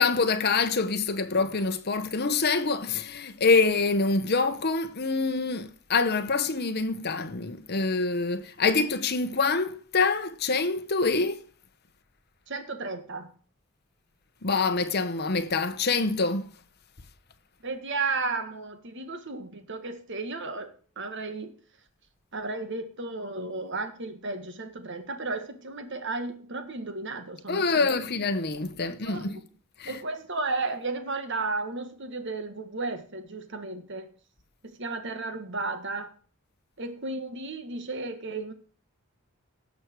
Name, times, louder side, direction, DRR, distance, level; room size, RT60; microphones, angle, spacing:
voice 1, 0.0-11.4 14.4-16.5 27.5-29.4 29.8-30.0, left 4 dB, 45° left, 1.0 m, -26 dB
voice 2, 12.5-13.3 17.6-21.5 22.3-27.9 28.8-29.4 29.9-34.1 34.6-36.1 36.8-38.5, right 3 dB, 55° right, 1.8 m, -34 dB
17.5 x 6.4 x 4.6 m
head